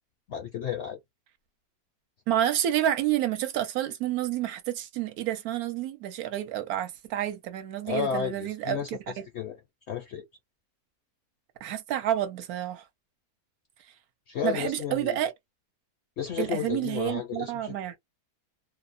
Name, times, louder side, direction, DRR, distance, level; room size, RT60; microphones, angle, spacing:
voice 1, 0.3-1.0 7.8-9.6 9.9-10.2 14.3-15.2 16.2-17.8, left 8 dB, 65° left, 0.7 m, -32 dB
voice 2, 2.3-9.0 11.6-12.8 14.4-15.3 16.4-18.0, right 12 dB, 75° right, 1.0 m, -29 dB
2.6 x 2.0 x 2.4 m
omnidirectional pair, 1.7 m